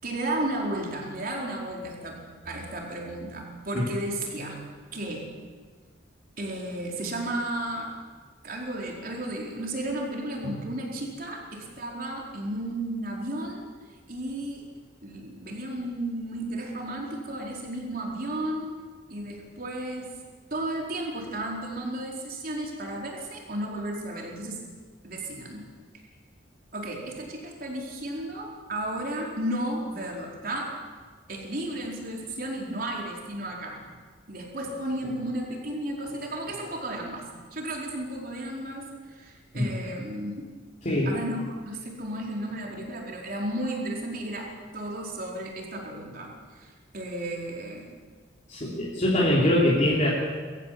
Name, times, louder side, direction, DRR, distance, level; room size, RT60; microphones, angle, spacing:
voice 1, 0.0-4.6 4.9-5.3 6.4-7.9 8.4-13.6 14.1-14.7 15.0-18.7 19.1-20.1 20.5-24.6 25.0-25.7 26.7-30.7 31.3-33.8 34.3-37.2 37.5-40.5 41.1-47.9, right 1 dB, 50° right, -1 dB, 4.6 m, -33 dB
voice 2, 48.5-50.1, left 1 dB, 40° left, -5 dB, 3.3 m, -23 dB
23.0 x 14.5 x 8.6 m, 1.5 s
head